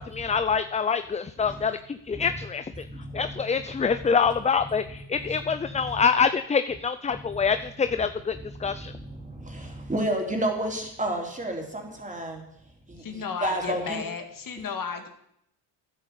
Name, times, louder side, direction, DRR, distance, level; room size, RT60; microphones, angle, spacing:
voice 1, 0.0-2.8 3.1-8.9, left 6 dB, 15° left, 11 dB, 0.5 m, -26 dB
voice 2, 2.8-3.4 3.9-4.0 5.2-6.0 7.1-7.5 8.4-12.4 12.9-14.0, right 1 dB, 15° right, 2 dB, 3.6 m, -32 dB
voice 3, 13.0-15.1, left 5 dB, 50° left, 6 dB, 2.1 m, -34 dB
10.0 x 9.0 x 8.2 m, 0.74 s
supercardioid pair, 80°, 43 cm